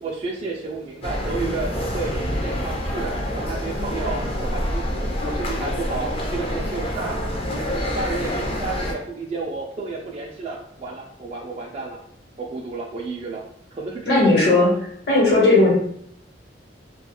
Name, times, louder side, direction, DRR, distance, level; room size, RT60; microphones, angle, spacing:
voice 1, 0.0-7.2 7.5-12.0 12.4-13.4 13.7-14.2 14.5-14.6, right 3 dB, 35° right, -2 dB, 0.3 m, -32 dB
sound 1, 1.0-8.9, equal, 35° left, 0.5 m, -27 dB
voice 2, 14.1-14.7 15.1-15.7, left 2 dB, 65° left, -4 dB, 1.0 m, -16 dB
2.3 x 2.2 x 2.8 m, 0.67 s
head